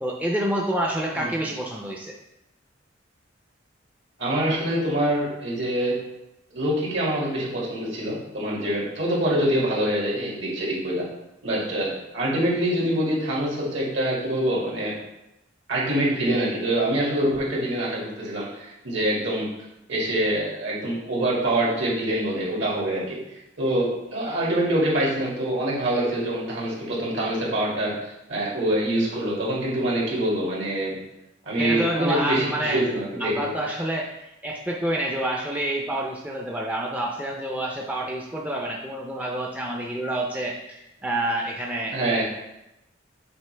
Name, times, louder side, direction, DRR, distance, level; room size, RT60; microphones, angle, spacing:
voice 1, 0.0-2.1 31.6-32.9 33.2-42.0, right 1 dB, 5° right, -1 dB, 0.5 m, -28 dB
voice 2, 4.2-6.0 6.5-11.1 11.4-14.9 15.7-19.5 19.9-23.2 23.6-30.9 31.5-33.5 41.9-42.2, right 1 dB, 70° right, -5 dB, 2.2 m, -25 dB
7.9 x 4.0 x 3.3 m, 0.90 s
head